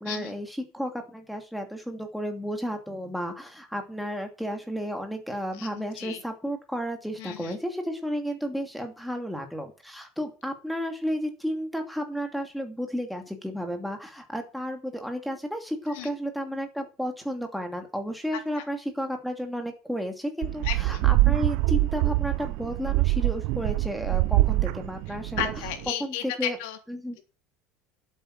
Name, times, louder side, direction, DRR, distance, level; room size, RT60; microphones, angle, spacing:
voice 1, 0.0-25.5 26.0-26.6 26.9-27.2, equal, ahead, 5 dB, 2.7 m, -32 dB
voice 2, 5.6-6.2 7.2-7.6 15.9-16.1 18.6-18.7 20.6-21.0 25.4-26.8, left 10 dB, 70° left, 5 dB, 3.4 m, -34 dB
sound 1, 20.4-25.9, right 20 dB, 60° right, 0.7 m, -24 dB
11.5 x 8.6 x 7.6 m, 0.33 s
cardioid pair, 155°, 0 cm